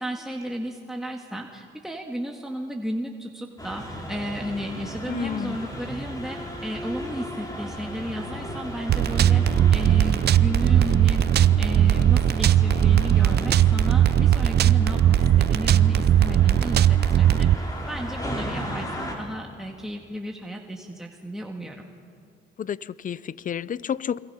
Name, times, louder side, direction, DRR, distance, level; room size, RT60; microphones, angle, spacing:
voice 1, 0.0-21.9, equal, ahead, 1 dB, 1.9 m, -34 dB
sound 1, 3.6-19.2, equal, 20° left, 5.0 m, -36 dB
voice 2, 5.1-5.6 22.6-24.2, left 8 dB, 40° left, 19 dB, 0.6 m, -30 dB
sound 2, 8.9-17.6, right 11 dB, 55° right, 0.6 m, -19 dB
28.5 x 23.0 x 5.7 m, 2.4 s
cardioid pair, 90°, 20 cm